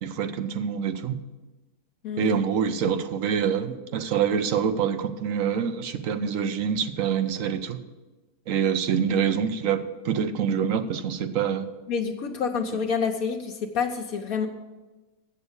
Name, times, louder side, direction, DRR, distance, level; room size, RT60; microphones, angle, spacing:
voice 1, 0.0-1.1 2.2-7.8 8.5-11.7, right 7 dB, 65° right, 10 dB, 1.0 m, -26 dB
voice 2, 2.0-2.4 11.9-14.5, left 6 dB, 70° left, 3 dB, 1.2 m, -28 dB
8.2 x 7.1 x 8.0 m, 1.2 s
omnidirectional pair, 1.6 m